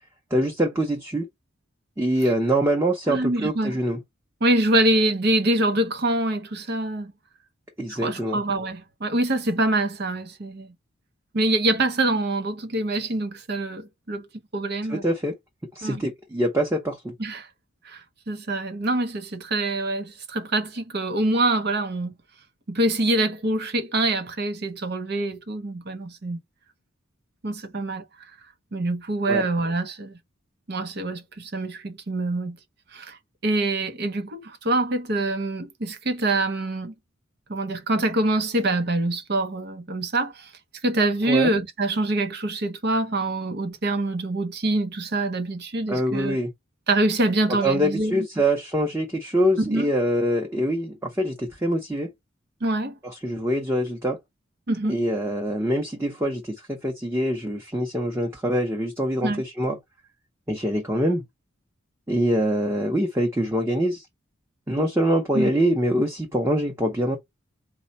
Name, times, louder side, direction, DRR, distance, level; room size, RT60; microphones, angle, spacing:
voice 1, 0.3-1.3 2.0-4.0 7.8-8.4 14.9-15.3 15.7-17.1 29.3-29.4 41.3-41.5 45.9-46.5 47.6-52.1 53.0-54.2 54.8-59.8 60.5-61.2 62.1-64.1 64.7-67.2, right 1 dB, 15° right, 0.8 m, -24 dB
voice 2, 3.1-3.8 4.4-7.1 7.9-10.7 11.3-14.3 14.5-15.0 15.8-16.0 17.2-17.5 17.8-22.2 22.7-26.4 27.4-28.0 28.7-30.2 30.7-32.6 32.9-36.9 37.5-40.5 40.8-46.4 46.9-48.3 49.6-49.9 52.6-53.0 54.7-55.0 59.2-59.4 64.8-64.9 65.3-65.5, right 2 dB, 55° right, 0.7 m, -25 dB
4.2 x 2.3 x 4.0 m
head